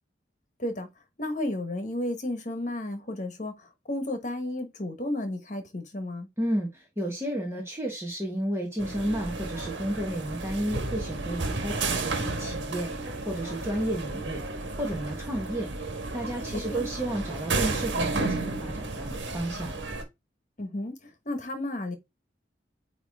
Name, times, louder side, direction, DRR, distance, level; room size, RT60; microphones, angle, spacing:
voice 1, 1.2-3.5 3.9-6.3 16.7-16.9 20.6-20.9 21.2-22.0, left 1 dB, 40° left, 1.3 m, -32 dB
voice 2, 6.4-14.4 14.8-15.7 16.1-19.7, right 1 dB, 15° right, 1.2 m, -32 dB
sound 1, 8.8-20.0, right 3 dB, 80° right, 1.4 m, -32 dB
9.0 x 3.1 x 3.5 m
head